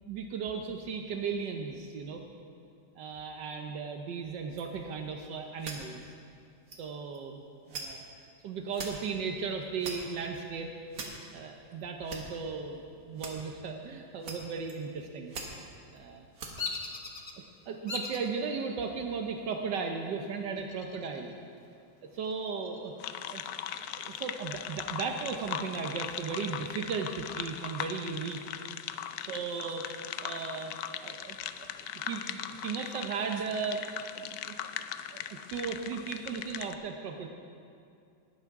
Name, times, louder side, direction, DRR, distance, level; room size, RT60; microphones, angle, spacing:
voice 1, 0.1-2.2 3.0-6.0 6.8-8.0 8.4-10.7 11.3-12.8 13.1-16.5 17.7-21.3 22.1-23.4 23.9-28.4 29.3-30.7 31.0-34.5 35.1-37.3, right 5 dB, 75° right, 4 dB, 1.4 m, -36 dB
sound 1, 4.5-4.6 5.3-5.4 5.6-6.0 6.7-6.8 7.1-7.2 7.7-7.8 8.7-8.9 9.5-10.3 10.9-11.1 11.7-12.2 13.1-13.3 14.2-14.4 14.6-15.0 15.3-16.0 16.3-16.5 16.8-16.9, right 4 dB, 55° right, 1.7 m, -41 dB
Bird vocalization bird call bird song, 16.6-17.3 17.9-18.3 18.9-19.4 20.6-21.3 21.7-21.8 22.2-23.6, left 4 dB, 35° left, 0.8 m, -39 dB
sound 2, 23.0-36.7, left 10 dB, 70° left, 0.9 m, -39 dB
19.0 x 10.5 x 3.6 m, 2.4 s
omnidirectional pair, 2.0 m